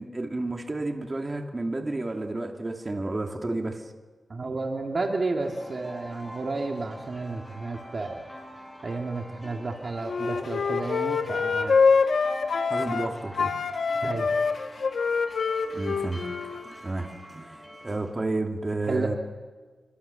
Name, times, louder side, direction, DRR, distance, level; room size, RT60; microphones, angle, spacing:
voice 1, 0.0-3.9 12.7-13.5 15.7-17.6 17.8-19.1, right 2 dB, 25° right, 2 dB, 2.5 m, -31 dB
voice 2, 4.3-8.2 8.8-11.8 14.0-14.3 18.9-19.1, right 3 dB, 40° right, 2 dB, 2.1 m, -31 dB
sound 1, 5.4-18.1, equal, 10° left, 6.7 m, -44 dB
Wind instrument woodwind instrument, 10.0-13.1 13.4-16.7, left 5 dB, 60° left, 1.3 m, -25 dB
25.5 x 23.0 x 6.8 m, 1.4 s
wide cardioid pair, 120°, 0 cm